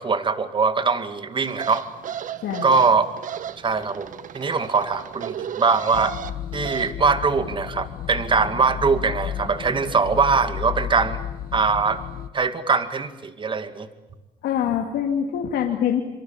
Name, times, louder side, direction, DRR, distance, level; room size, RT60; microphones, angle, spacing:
voice 1, 0.0-1.8 2.6-3.1 3.6-6.1 6.5-11.2 11.5-12.0 12.3-13.9, right 4 dB, 30° right, 10 dB, 2.1 m, -22 dB
sound 1, 1.5-6.9, right 9 dB, 50° right, 1.2 m, -34 dB
voice 2, 2.4-2.7 14.4-16.0, left 9 dB, 75° left, 1 dB, 2.8 m, -24 dB
sound 2, 5.9-12.3, left 10 dB, 60° left, 1.4 m, -33 dB
25.0 x 25.0 x 8.8 m, 1.1 s
cardioid pair, 110°, 17 cm